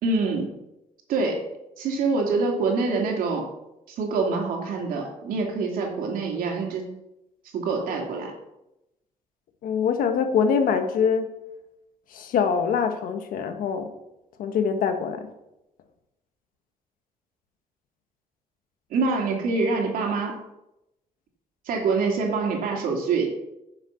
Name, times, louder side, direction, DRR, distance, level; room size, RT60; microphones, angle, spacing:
voice 1, 0.0-0.6 1.1-1.4 1.8-3.5 3.9-6.9 7.5-8.3 18.9-20.4 21.7-23.3, right 4 dB, 85° right, 1 dB, 2.7 m, -25 dB
voice 2, 9.6-11.3 12.1-13.9 14.4-15.3, left 6 dB, 80° left, 7 dB, 1.3 m, -24 dB
10.0 x 6.8 x 5.7 m, 0.90 s
cardioid pair, 130°, 14 cm